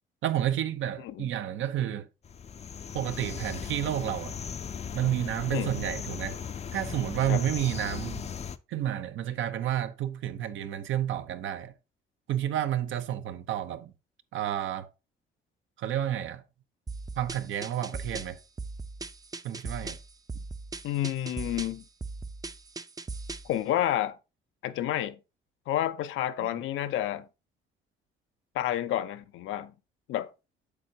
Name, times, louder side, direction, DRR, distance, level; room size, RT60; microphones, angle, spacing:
voice 1, 0.2-2.1 2.9-4.4 4.9-6.4 6.7-8.3 8.7-11.7 12.3-13.9 14.3-14.9 15.8-16.4 17.2-18.4 19.4-20.0, right 11 dB, 75° right, 0.8 m, -30 dB
sound 1, 2.2-8.6, left 7 dB, 35° left, 0.5 m, -38 dB
sound 2, 16.9-23.6, right 3 dB, 20° right, 0.5 m, -39 dB
voice 2, 20.8-21.8 23.4-24.2 24.6-25.2 25.7-27.3 28.5-29.7 30.1-30.3, left 12 dB, 85° left, 0.7 m, -30 dB
8.3 x 6.6 x 2.8 m
cardioid pair, 90°, 20 cm